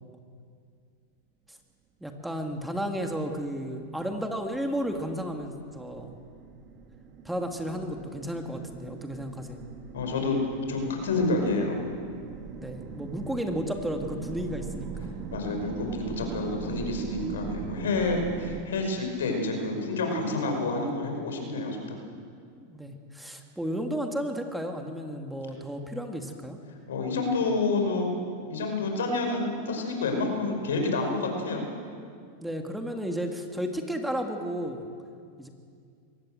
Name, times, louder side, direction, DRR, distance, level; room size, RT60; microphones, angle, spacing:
voice 1, 2.0-6.2 7.2-9.6 12.5-15.1 22.6-26.6 32.4-34.8 35.4-35.5, equal, 5° right, 3 dB, 2.2 m, -33 dB
sound 1, 3.8-18.6, right 6 dB, 35° right, 2.4 m, -40 dB
voice 2, 9.9-10.4 10.7-11.8 15.3-22.0 26.9-28.1 28.5-31.7, left 3 dB, 90° left, 3 dB, 5.5 m, -28 dB
23.0 x 18.5 x 7.7 m, 2.3 s
hypercardioid pair, 125°, 0 cm